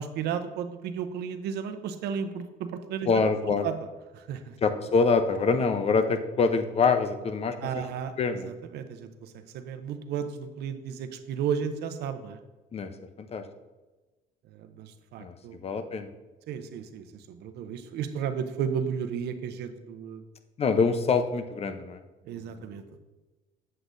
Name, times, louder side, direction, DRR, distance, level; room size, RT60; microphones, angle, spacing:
voice 1, 0.0-4.6 7.6-8.1 8.4-12.4 14.5-15.6 16.5-20.2 22.2-22.8, right 7 dB, 75° right, 9 dB, 0.7 m, -34 dB
voice 2, 3.1-3.6 4.6-7.8 8.2-8.5 12.7-12.9 13.2-13.4 15.2-15.3 15.6-16.1 20.6-22.0 22.3-22.6, left 4 dB, 35° left, 9 dB, 0.7 m, -25 dB
8.2 x 7.6 x 2.6 m, 1.2 s
cardioid pair, 110°, 17 cm